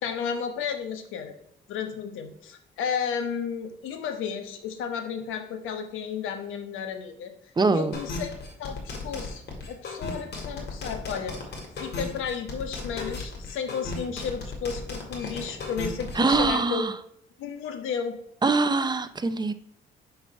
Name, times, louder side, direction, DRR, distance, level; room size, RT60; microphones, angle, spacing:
voice 1, 0.0-1.3 1.7-7.3 7.7-8.3 8.6-11.3 11.8-16.9 17.4-18.2, left 7 dB, 85° left, 6 dB, 1.1 m, -33 dB
voice 2, 7.6-7.9 16.2-16.9 18.4-19.5, right 3 dB, 20° right, 11 dB, 0.6 m, -23 dB
sound 1, 7.9-16.5, left 3 dB, 55° left, 2.2 m, -35 dB
5.8 x 4.6 x 5.4 m, 0.73 s
cardioid pair, 90°, 20 cm